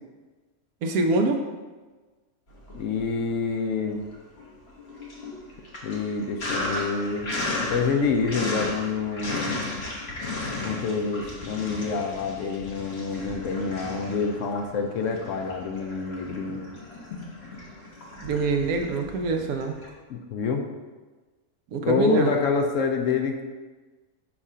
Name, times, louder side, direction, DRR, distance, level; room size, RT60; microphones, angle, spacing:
voice 1, 0.8-1.4 18.2-19.7 21.7-22.4, right 3 dB, 80° right, 4 dB, 1.1 m, -25 dB
Sink (filling or washing), 2.6-3.5 3.8-19.9, left 2 dB, 50° left, 1.3 m, -35 dB
voice 2, 2.7-4.1 5.8-7.3 7.7-9.5 10.6-16.6 20.1-20.7 21.8-23.4, left 5 dB, 70° left, 3 dB, 0.9 m, -27 dB
7.1 x 2.5 x 5.5 m, 1.3 s
omnidirectional pair, 1.5 m